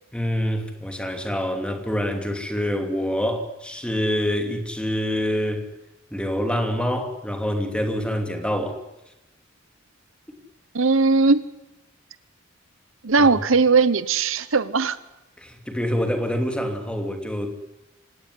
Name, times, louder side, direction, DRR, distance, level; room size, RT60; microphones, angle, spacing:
voice 1, 0.1-5.6 6.1-8.8 13.2-13.3 15.4-17.5, equal, 5° left, 2.8 m, -26 dB
voice 2, 10.7-11.4 13.0-15.0, right 4 dB, 85° right, 1.1 m, -19 dB
25.5 x 18.0 x 9.9 m
head